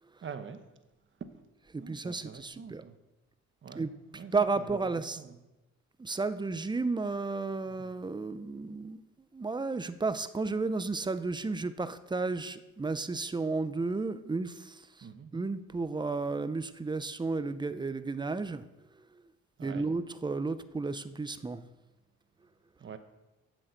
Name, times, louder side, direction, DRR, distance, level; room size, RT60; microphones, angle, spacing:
voice 1, 0.2-0.6 1.8-3.0 3.6-3.9 4.1-4.3 4.6-5.4 7.7-7.8 15.0-15.3 19.6-19.9 22.8-23.0, right 6 dB, 40° right, 9 dB, 1.1 m, -45 dB
voice 2, 1.7-2.8 3.7-5.2 6.0-9.0 9.3-14.8 15.3-18.6 19.6-21.6, right 3 dB, 15° right, 13 dB, 0.6 m, -33 dB
8.0 x 6.3 x 7.9 m, 1.0 s
cardioid pair, 90°, 30 cm